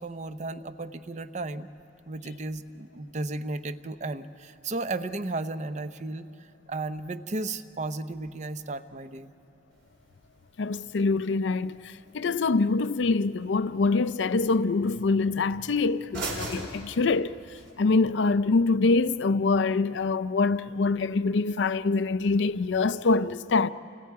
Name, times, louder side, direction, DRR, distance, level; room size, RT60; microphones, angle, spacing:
voice 1, 0.0-1.7 2.1-9.3, right 2 dB, 40° right, 0.7 m, -34 dB
sound 1, 9.7-17.7, right 2 dB, 75° right, 4.4 m, -43 dB
voice 2, 10.6-17.4 17.8-23.7, left 3 dB, 70° left, 0.5 m, -25 dB
29.5 x 28.5 x 4.7 m
head